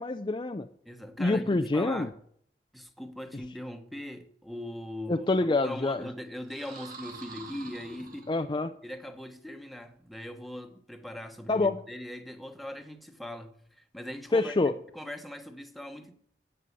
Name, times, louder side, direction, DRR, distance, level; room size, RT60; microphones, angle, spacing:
voice 1, 0.0-0.7 1.2-2.1 5.1-6.1 8.3-8.7 11.5-11.8 14.3-14.7, left 2 dB, 25° left, 0.4 m, -26 dB
voice 2, 0.8-2.1 2.7-8.3 8.8-16.1, left 1 dB, ahead, 1.2 m, -40 dB
sound 1, 6.4-8.7, right 4 dB, 55° right, 5.8 m, -46 dB
15.0 x 5.6 x 8.3 m
head